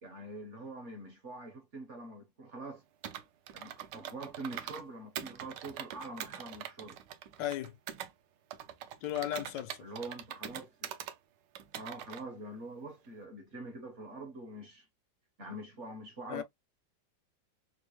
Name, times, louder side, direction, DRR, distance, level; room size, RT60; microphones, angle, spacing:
voice 1, 0.0-2.8 3.5-7.0 9.8-10.9 11.7-14.9 15.4-16.4, right 2 dB, 55° right, 0.9 m, -45 dB
Computer keyboard, 3.0-4.8 5.2-8.1 8.5-11.2 11.6-12.2, right 10 dB, 75° right, 1.2 m, -43 dB
voice 2, 7.4-7.8 9.0-9.8 16.3-16.4, left 12 dB, 85° left, 1.3 m, -35 dB
4.3 x 2.1 x 3.0 m
omnidirectional pair, 2.0 m